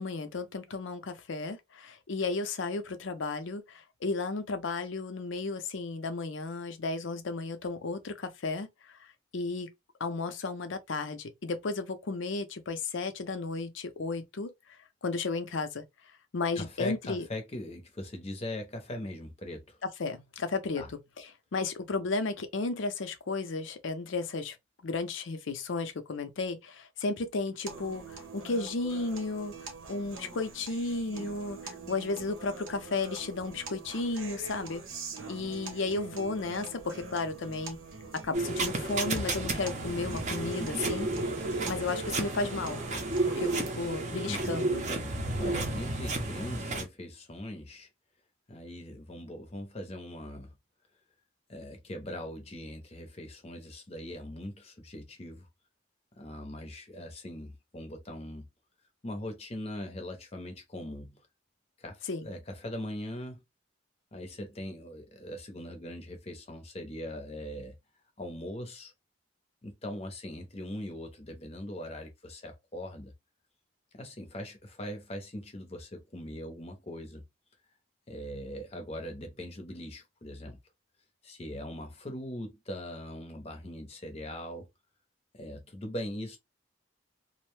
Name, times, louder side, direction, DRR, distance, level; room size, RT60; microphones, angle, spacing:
voice 1, 0.0-8.7 9.0-9.7 10.0-14.5 15.0-15.8 16.3-17.2 19.8-20.8 21.2-24.6 24.8-29.5 29.9-34.8 35.3-37.8 38.1-41.1 41.7-42.8 43.2-44.8 62.1-62.3, left 3 dB, 70° left, 0.5 m, -34 dB
voice 2, 16.6-19.8 20.8-20.9 44.3-44.7 45.4-47.9 48.5-50.5 51.5-55.5 56.2-58.5 59.0-61.2 61.8-63.4 64.1-67.8 68.2-68.9 69.6-73.1 73.9-77.2 78.1-80.6 81.2-84.7 85.3-86.4, left 1 dB, 30° left, 0.6 m, -41 dB
sound 1, 27.7-43.7, right 4 dB, 80° right, 0.8 m, -44 dB
sound 2, 38.3-46.9, right 2 dB, 35° right, 0.6 m, -32 dB
2.5 x 2.1 x 3.1 m
head